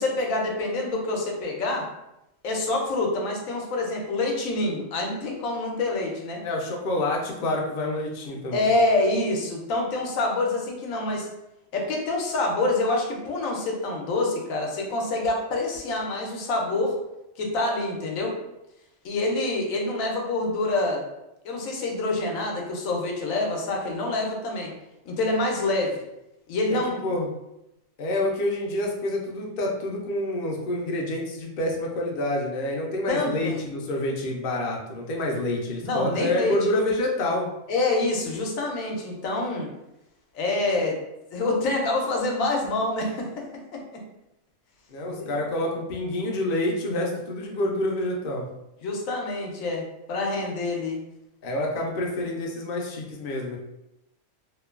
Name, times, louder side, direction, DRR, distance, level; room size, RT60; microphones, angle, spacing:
voice 1, 0.0-1.9 2.4-6.4 8.5-11.3 11.7-16.9 17.4-18.3 19.0-21.1 21.4-24.7 25.1-26.0 26.5-27.0 33.1-33.6 35.8-36.6 37.7-39.7 40.3-41.0 41.3-43.5 43.7-44.0 45.1-45.3 48.8-51.0, left 2 dB, 90° left, 0 dB, 1.0 m, -26 dB
voice 2, 6.4-8.7 26.7-27.3 28.0-37.5 44.9-48.5 51.4-53.6, left 1 dB, 60° left, 0 dB, 0.5 m, -27 dB
2.9 x 2.2 x 2.3 m, 0.89 s
omnidirectional pair, 1.4 m